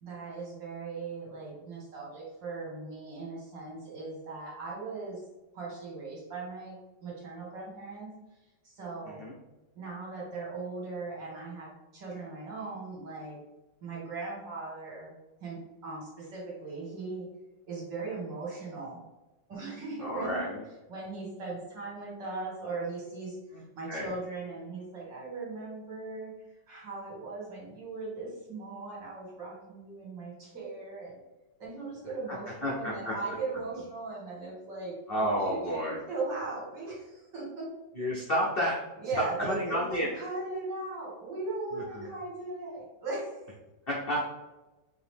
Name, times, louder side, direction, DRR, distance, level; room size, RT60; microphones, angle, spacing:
voice 1, 0.0-5.2 5.5-8.1 8.6-9.2 9.7-13.4 13.8-15.1 15.4-17.3 17.7-19.0 19.5-20.4 20.9-23.4 23.7-26.3 26.7-31.2 31.6-37.7 39.0-43.3, right 3 dB, 65° right, -5 dB, 2.4 m, -38 dB
voice 2, 20.0-20.6 23.9-24.1 32.3-32.4 32.6-33.1 35.1-36.0 37.9-38.8 39.2-40.1 41.7-42.0 43.9-44.2, equal, 85° left, -4 dB, 0.5 m, -30 dB
5.0 x 2.8 x 3.4 m, 1.1 s
omnidirectional pair, 2.1 m